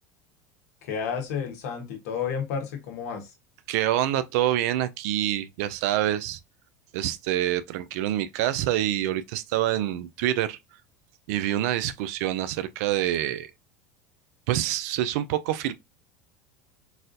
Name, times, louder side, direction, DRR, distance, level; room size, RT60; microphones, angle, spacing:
voice 1, 0.9-3.2, left 7 dB, 80° left, 1.3 m, -31 dB
voice 2, 3.7-6.4 6.9-10.6 11.3-13.5 14.5-15.7, right 13 dB, 70° right, 0.5 m, -26 dB
4.0 x 2.5 x 2.6 m
hypercardioid pair, 90°, 9 cm